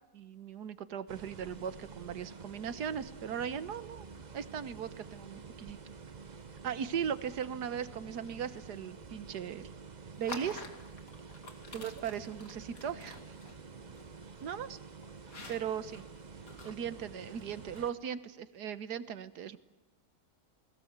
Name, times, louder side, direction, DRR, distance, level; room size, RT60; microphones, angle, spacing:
voice 1, 0.1-4.1 4.3-5.8 6.6-9.7 10.2-10.7 11.7-13.2 14.4-14.8 15.5-16.0 16.6-19.6, right 8 dB, 85° right, 14 dB, 1.7 m, -38 dB
sound 1, 1.1-17.9, right 5 dB, 30° right, 1.0 m, -49 dB
sound 2, 10.1-18.1, left 3 dB, 60° left, 3.0 m, -50 dB
29.0 x 20.5 x 8.1 m, 0.97 s
omnidirectional pair, 1.7 m